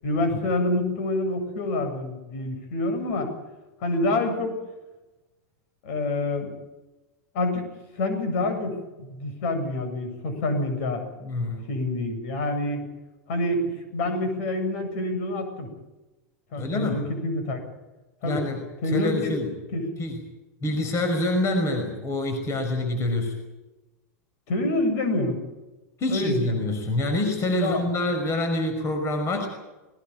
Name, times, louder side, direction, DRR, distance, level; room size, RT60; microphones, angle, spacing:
voice 1, 0.0-3.3 3.8-4.6 5.8-6.5 7.3-7.7 8.0-11.0 11.7-12.8 13.3-15.7 16.5-17.6 18.2-18.4 18.8-19.3 19.7-19.9 24.5-25.4 26.1-26.5 27.6-27.8, left 2 dB, 60° left, 7 dB, 7.9 m, -27 dB
voice 2, 11.2-11.7 16.6-17.0 18.2-19.6 20.0-20.2 20.6-23.3 26.0-29.5, left 1 dB, 35° left, 5 dB, 5.6 m, -26 dB
20.5 x 19.5 x 8.9 m, 1.1 s
hypercardioid pair, 105°, 9 cm